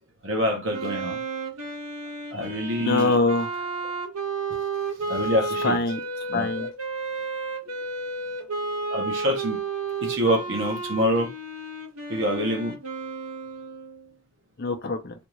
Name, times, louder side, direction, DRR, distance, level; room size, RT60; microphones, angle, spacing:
voice 1, 0.2-1.2 2.3-3.2 5.0-5.8 6.3-6.6 8.9-9.6 10.0-11.3 12.1-12.8, equal, 60° right, 1.0 m, -26 dB
Wind instrument woodwind instrument, 0.7-14.1, right 3 dB, 85° right, 1.3 m, -32 dB
voice 2, 2.8-3.7 5.6-6.0 6.3-6.7 14.6-15.1, left 3 dB, 45° left, 0.5 m, -24 dB
3.5 x 2.5 x 3.0 m
head